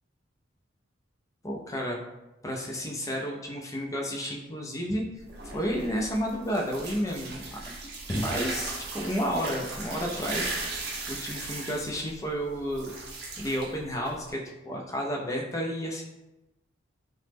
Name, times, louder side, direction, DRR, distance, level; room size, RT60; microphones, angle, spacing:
voice 1, 1.4-2.0 2.4-5.0 5.4-7.7 8.1-12.9 13.4-16.0, equal, 15° left, -1 dB, 0.3 m, -31 dB
sound 1, 5.2-14.3, right 3 dB, 55° right, 0.6 m, -37 dB
3.0 x 2.0 x 3.3 m, 0.98 s
head